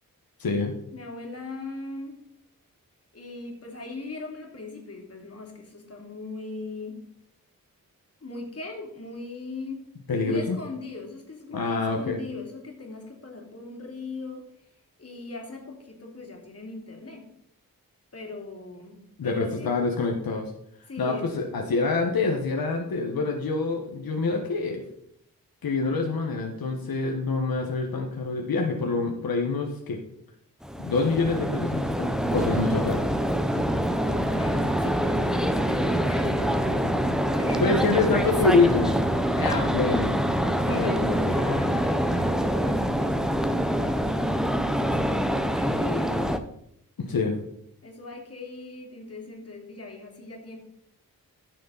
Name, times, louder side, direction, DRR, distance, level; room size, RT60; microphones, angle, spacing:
voice 1, 0.4-0.7 10.1-10.6 11.5-12.2 19.2-20.5 21.0-24.8 25.6-30.0 30.8-33.0 37.6-38.9 39.4-41.6 47.0-47.3, left 3 dB, 80° left, 1 dB, 1.4 m, -26 dB
voice 2, 0.9-2.2 3.1-7.0 8.2-9.8 10.2-14.5 15.0-17.2 18.1-19.0 19.2-19.7 20.9-21.3 33.8-37.0 37.3-39.5 40.5-44.0 44.7-46.3 47.8-50.6, left 3 dB, 45° left, 1 dB, 2.8 m, -39 dB
sound 1, 30.6-46.4, equal, ahead, 0.8 m, -25 dB
14.5 x 6.4 x 4.1 m, 0.73 s
wide cardioid pair, 100°, 35 cm